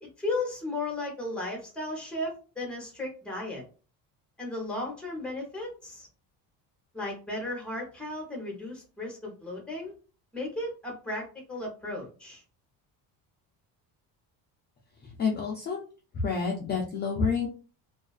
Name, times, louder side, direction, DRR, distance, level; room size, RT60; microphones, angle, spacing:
voice 1, 0.0-3.6 4.4-6.1 6.9-9.9 10.3-12.4, left 2 dB, 5° left, 0 dB, 0.7 m, -35 dB
voice 2, 15.0-15.8 16.1-17.5, left 5 dB, 25° left, -1 dB, 0.3 m, -29 dB
2.3 x 2.3 x 2.3 m, 0.37 s
cardioid pair, 135°, 42 cm